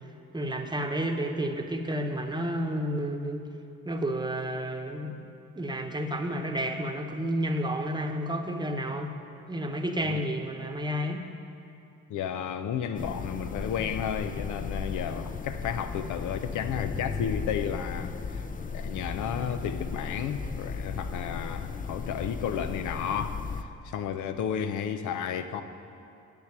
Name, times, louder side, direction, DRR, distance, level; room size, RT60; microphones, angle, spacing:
voice 1, 0.3-3.4 3.8-5.1 5.5-9.1 9.5-11.2, equal, 15° right, 1.0 m, -31 dB
voice 2, 12.1-18.4 18.7-23.4 23.8-25.6, left 8 dB, 80° left, 0.7 m, -32 dB
sound 1, 12.9-23.6, left 5 dB, 25° left, 0.5 m, -36 dB
10.5 x 8.3 x 6.0 m
cardioid pair, 90°, 30 cm